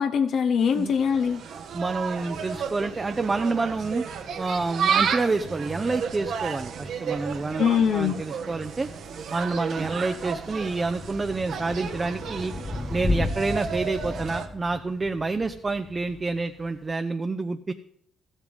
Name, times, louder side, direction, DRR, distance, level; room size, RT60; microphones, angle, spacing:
voice 1, 0.0-1.4 7.6-8.2, left 7 dB, 65° left, 7 dB, 0.7 m, -22 dB
Insect, 0.6-14.5, right 7 dB, 70° right, 1.2 m, -32 dB
voice 2, 1.7-4.0 4.4-8.9 9.3-12.5 12.9-17.7, right 3 dB, 25° right, 8 dB, 0.6 m, -28 dB
Thunder / Rain, 8.6-16.9, left 2 dB, 25° left, 0.7 m, -35 dB
14.0 x 8.2 x 5.3 m, 0.70 s
cardioid pair, 90°, 0 cm